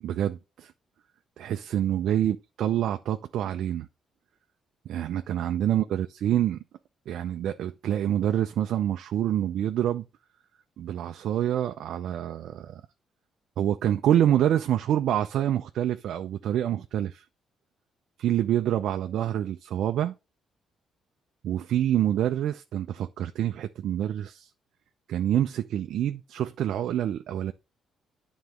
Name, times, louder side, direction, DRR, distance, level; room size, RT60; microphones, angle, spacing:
voice 1, 0.0-0.7 1.4-3.9 4.9-6.6 7.1-10.1 10.8-12.8 13.6-17.2 18.2-20.1 21.4-24.5 25.1-27.5, right 11 dB, 75° right, 0.5 m, -27 dB
9.4 x 4.0 x 4.8 m
cardioid pair, 90°, 0 cm